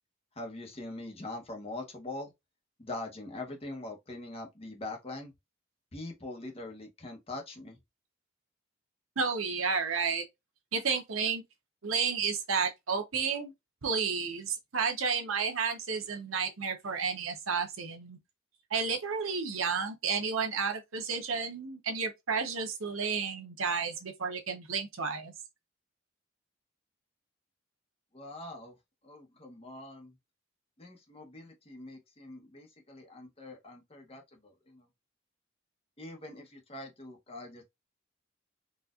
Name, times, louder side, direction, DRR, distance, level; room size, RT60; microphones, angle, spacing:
voice 1, 0.4-2.3 2.8-5.3 5.9-7.8 28.1-28.8 29.0-30.1 30.8-34.9 36.0-37.6, left 2 dB, 30° left, 1.0 m, -43 dB
voice 2, 9.2-10.2 10.7-11.4 11.8-13.5 13.8-18.2 18.7-25.3, right 5 dB, 85° right, 0.9 m, -31 dB
4.1 x 2.5 x 2.4 m
head